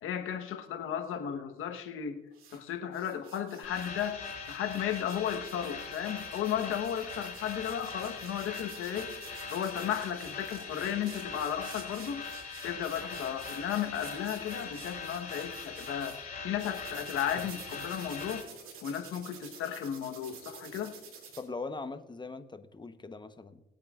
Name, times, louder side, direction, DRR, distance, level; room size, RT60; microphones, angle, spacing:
voice 1, 0.0-2.2 2.5-4.2 4.5-9.1 9.5-12.2 12.6-16.2 16.4-18.4 18.8-20.9, left 9 dB, 75° left, 6 dB, 1.2 m, -34 dB
sound 1, 2.3-2.6 2.9-16.2 16.6-21.4, right 6 dB, 75° right, 2.6 m, -50 dB
sound 2, 3.6-18.4, left 5 dB, 40° left, 3.2 m, -42 dB
voice 2, 21.4-23.6, left 3 dB, 20° left, 10 dB, 0.9 m, -41 dB
20.0 x 8.6 x 2.4 m, 1.0 s
cardioid pair, 85°, 21 cm